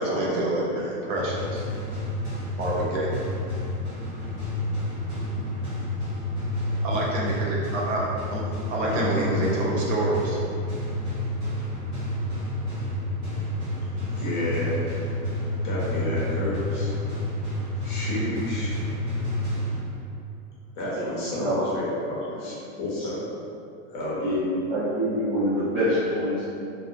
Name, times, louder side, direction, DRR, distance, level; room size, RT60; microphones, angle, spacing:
voice 1, 0.0-1.7 2.4-3.1 4.7-4.8 5.2-5.5 6.8-8.4 8.7-10.4, right 1 dB, 65° right, -4 dB, 0.7 m, -28 dB
sound 1, 1.1-20.1, left 1 dB, 10° right, 0.9 m, -30 dB
voice 2, 8.8-9.7 14.2-15.0 15.6-16.9 17.8-18.8 20.8-23.2 23.9-24.3, left 1 dB, 35° left, -7 dB, 0.6 m, -30 dB
voice 3, 20.9-21.6 22.4-22.5 23.0-23.1 24.0-26.4, equal, 30° right, -14 dB, 0.4 m, -26 dB
2.7 x 2.1 x 2.4 m, 2.6 s
supercardioid pair, 165°, 41 cm